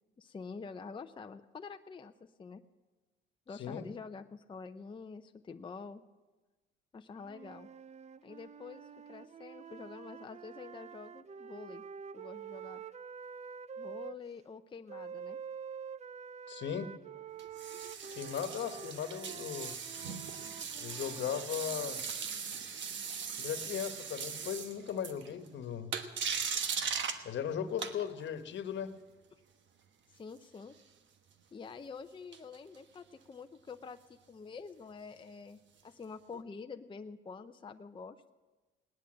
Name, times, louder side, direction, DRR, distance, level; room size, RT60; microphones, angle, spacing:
voice 1, 0.2-2.6 3.5-6.0 6.9-7.7 8.2-11.8 12.1-12.8 13.8-15.4 30.1-30.8 31.5-38.2, left 5 dB, 25° left, 7 dB, 0.6 m, -47 dB
voice 2, 3.5-3.9 16.5-16.9 18.1-19.7 20.8-22.0 23.4-25.9 27.2-28.9, left 8 dB, 65° left, 9 dB, 1.3 m, -37 dB
sound 1, 7.2-14.2 14.9-22.1, right 7 dB, 35° right, 0.5 m, -47 dB
sound 2, 17.4-25.5 25.9-27.2 27.8-28.3 32.3-32.8 36.3-36.4, right 6 dB, 70° right, 1.2 m, -39 dB
18.0 x 10.5 x 7.5 m, 1.2 s
cardioid pair, 90°, 20 cm